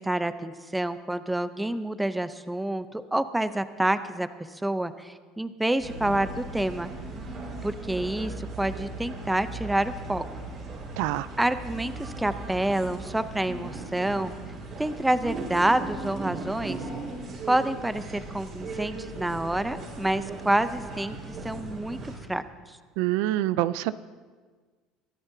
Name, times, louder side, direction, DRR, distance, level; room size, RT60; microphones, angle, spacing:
voice 1, 0.0-6.9 7.6-10.2 11.4-14.3 14.8-16.8 17.5-22.8, right 1 dB, 5° right, 12 dB, 0.6 m, -28 dB
sound 1, 5.8-22.2, right 2 dB, 45° right, 4.6 m, -38 dB
voice 2, 11.0-11.3 23.0-23.9, right 15 dB, 75° right, 16 dB, 0.4 m, -26 dB
22.0 x 14.0 x 2.8 m, 1.5 s
cardioid pair, 125°, 0 cm